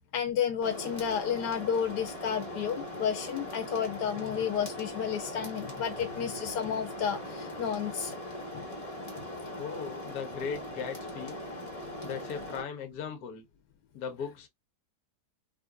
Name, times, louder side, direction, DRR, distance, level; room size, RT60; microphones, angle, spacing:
voice 1, 0.1-8.2, left 8 dB, 90° left, 1.3 m, -31 dB
sound 1, 0.6-12.6, left 1 dB, 25° left, 1.1 m, -40 dB
voice 2, 8.3-8.7 9.2-9.3 9.6-11.4 12.0-13.4 13.9-14.5, left 6 dB, 75° left, 1.4 m, -38 dB
4.3 x 2.5 x 2.2 m
omnidirectional pair, 1.7 m